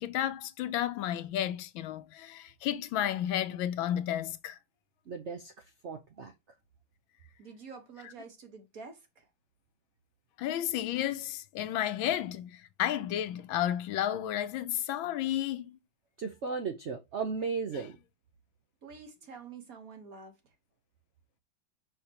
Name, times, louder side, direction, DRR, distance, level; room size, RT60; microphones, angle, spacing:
voice 1, 0.0-4.6 10.4-15.8, left 11 dB, 75° left, 1.4 m, -32 dB
voice 2, 5.1-5.5 5.8-6.3 16.2-18.0, right 5 dB, 70° right, 0.6 m, -35 dB
voice 3, 7.4-9.3 18.8-20.4, right 5 dB, 50° right, 1.5 m, -48 dB
5.7 x 5.7 x 2.9 m
omnidirectional pair, 2.3 m